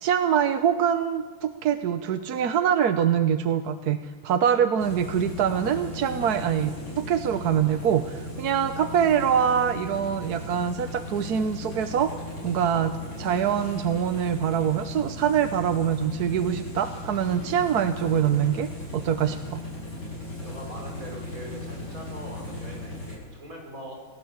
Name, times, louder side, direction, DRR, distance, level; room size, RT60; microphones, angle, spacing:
voice 1, 0.0-12.1 12.4-19.6, right 8 dB, 60° right, 10 dB, 1.2 m, -24 dB
sound 1, 4.8-23.1, left 2 dB, 60° left, 8.5 m, -37 dB
voice 2, 20.4-23.9, equal, 35° right, 0 dB, 6.1 m, -41 dB
27.5 x 17.5 x 8.0 m, 1.4 s
omnidirectional pair, 2.4 m